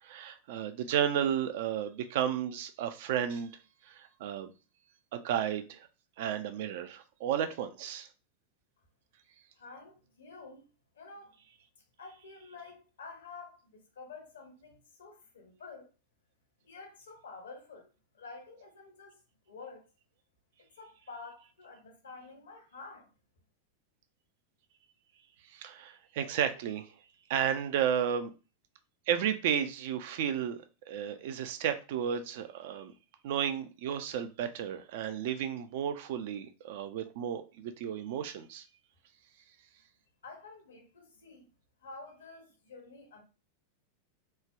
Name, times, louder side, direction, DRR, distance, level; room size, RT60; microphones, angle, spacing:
voice 1, 0.0-3.6 3.8-4.5 5.1-5.9 6.2-8.1 25.5-26.9 27.3-28.3 29.1-32.9 33.2-38.6, right 9 dB, 50° right, 0.3 m, -33 dB
voice 2, 9.6-11.4 12.0-15.9 16.6-17.9 18.1-19.2 19.5-19.8 20.6-23.1 40.2-41.5 41.8-43.2, left 4 dB, 65° left, 0.8 m, -49 dB
3.2 x 2.1 x 2.3 m
figure-of-eight pair, 90°, 0 cm